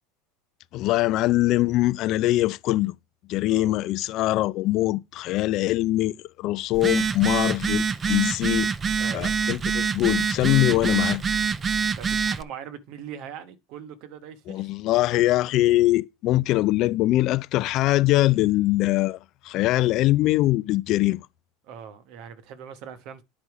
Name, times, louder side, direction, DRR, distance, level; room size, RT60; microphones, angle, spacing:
voice 1, 0.7-2.9 3.3-8.7 9.1-11.2 14.5-19.2 19.4-21.2, left 17 dB, 55° left, 0.4 m, -22 dB
voice 2, 3.5-3.8 8.9-9.3 12.0-14.7 21.6-23.2, right 8 dB, 60° right, 1.1 m, -40 dB
Telephone, 6.7-12.4, right 6 dB, 25° right, 0.5 m, -25 dB
9.7 x 4.1 x 4.8 m
supercardioid pair, 110°, 0 cm